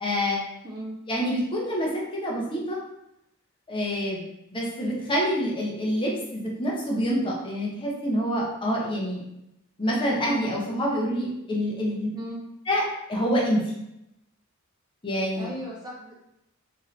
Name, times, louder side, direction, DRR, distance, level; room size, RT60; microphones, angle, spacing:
voice 1, 0.0-0.5 1.1-2.8 3.7-4.2 4.5-9.2 9.8-12.1 12.7-12.8 13.1-13.7 15.0-15.5, equal, 25° left, -3 dB, 0.6 m, -26 dB
voice 2, 0.6-1.0 12.1-12.4 15.4-16.1, equal, 20° right, -3 dB, 0.4 m, -36 dB
3.1 x 2.7 x 2.5 m, 0.83 s
head